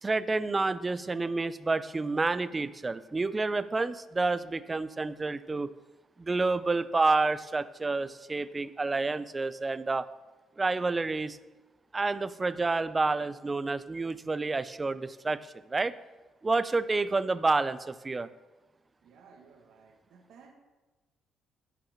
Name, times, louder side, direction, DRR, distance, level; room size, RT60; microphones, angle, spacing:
voice 1, 0.0-5.7 6.2-10.1 10.6-11.4 11.9-15.4 15.7-16.0 16.4-18.3, right 3 dB, 25° right, 15 dB, 0.5 m, -29 dB
voice 2, 19.0-20.5, right 5 dB, 80° right, 2 dB, 1.7 m, -56 dB
11.0 x 6.0 x 7.4 m, 1.2 s
cardioid pair, 90°, 0 cm